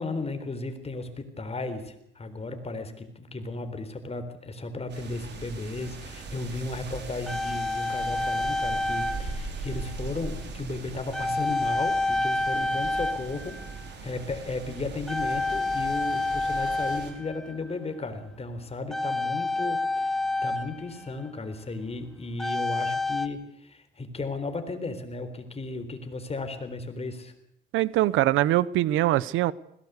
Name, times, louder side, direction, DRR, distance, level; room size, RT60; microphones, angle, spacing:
voice 1, 0.0-27.3, left 3 dB, 30° left, 3.9 m, -35 dB
sound 1, 4.9-17.1, right 3 dB, 60° right, 4.9 m, -40 dB
sound 2, 5.8-5.9 6.8-9.4 9.7-10.0 11.1-13.9 14.2-14.6 15.1-17.7 18.9-21.3 22.4-23.3, left 2 dB, ahead, 1.8 m, -29 dB
voice 2, 27.7-29.5, right 15 dB, 90° right, 0.7 m, -23 dB
20.5 x 17.5 x 8.2 m
cardioid pair, 90°, 20 cm